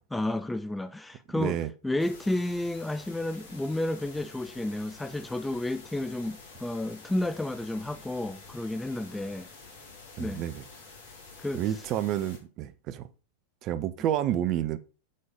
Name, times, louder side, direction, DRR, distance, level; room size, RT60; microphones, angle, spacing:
voice 1, 0.1-1.6 1.8-9.5 10.2-10.4 11.4-11.6, left 1 dB, 5° left, 0.4 m, -31 dB
voice 2, 1.4-1.7 10.2-10.6 11.5-13.1 13.6-14.8, right 11 dB, 35° right, 0.6 m, -29 dB
sound 1, 2.0-12.4, left 4 dB, 55° left, 2.0 m, -49 dB
7.5 x 3.9 x 5.0 m
figure-of-eight pair, 90°, 0 cm